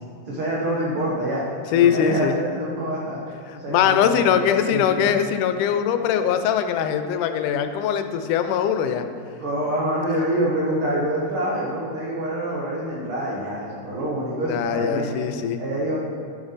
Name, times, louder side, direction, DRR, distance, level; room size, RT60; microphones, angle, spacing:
voice 1, 0.2-1.4 1.7-3.2 3.6-5.0 9.4-15.2 15.6-16.0, right 1 dB, 55° right, -5 dB, 1.7 m, -26 dB
voice 2, 1.7-2.3 3.5-9.0 14.5-15.6, left 8 dB, 90° left, 8 dB, 2.1 m, -21 dB
11.5 x 7.0 x 4.0 m, 2.3 s
omnidirectional pair, 3.6 m